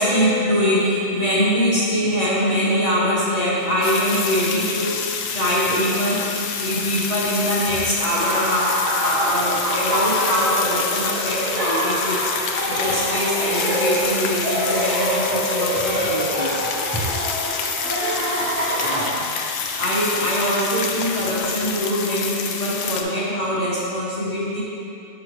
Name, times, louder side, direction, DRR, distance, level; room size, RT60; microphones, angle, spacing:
voice 1, 0.0-16.5 18.4-19.3 19.7-24.6, equal, 30° left, -7 dB, 1.1 m, -23 dB
sound 1, 3.6-21.8, right 1 dB, 15° right, 0.4 m, -41 dB
sound 2, 3.8-23.0, left 6 dB, 65° left, 0.7 m, -28 dB
Laughter, 8.1-19.0, equal, 70° right, 1.6 m, -25 dB
6.4 x 6.2 x 3.1 m, 2.7 s
omnidirectional pair, 1.5 m